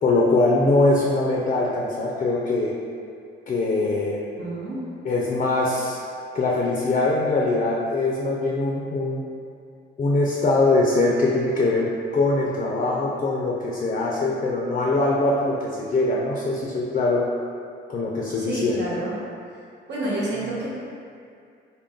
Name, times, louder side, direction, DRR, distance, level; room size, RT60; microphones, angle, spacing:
voice 1, 0.0-2.7 3.5-4.3 5.0-6.0 6.3-9.2 10.0-17.3 17.9-18.9, left 2 dB, 40° left, -3 dB, 0.5 m, -22 dB
voice 2, 4.4-4.8 18.4-19.2 19.9-20.7, right 1 dB, 60° right, -6 dB, 1.0 m, -29 dB
3.7 x 2.2 x 3.6 m, 2.4 s
cardioid pair, 90°, 20 cm